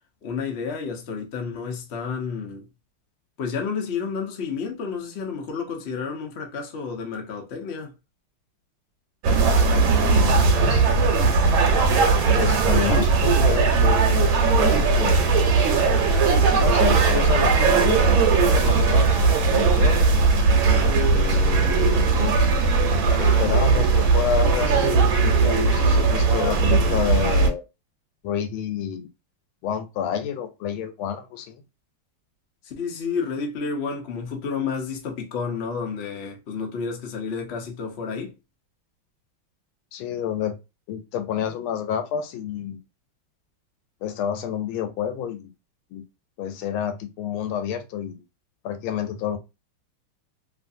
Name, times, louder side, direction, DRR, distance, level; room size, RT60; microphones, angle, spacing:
voice 1, 0.2-2.6 3.4-7.9 32.7-38.3, left 5 dB, 70° left, 0.6 m, -30 dB
sound 1, 9.2-27.5, right 4 dB, 80° right, 1.4 m, -18 dB
voice 2, 10.1-10.8 12.2-15.2 16.6-18.1 18.5-19.2 19.5-20.0 21.1-22.4 23.2-27.6 28.2-29.1 29.6-31.6 39.9-40.5 40.9-42.8 44.0-45.5 45.9-46.0 46.4-48.2 48.6-49.4, left 8 dB, 85° left, 1.4 m, -29 dB
3.2 x 2.5 x 2.6 m
omnidirectional pair, 2.2 m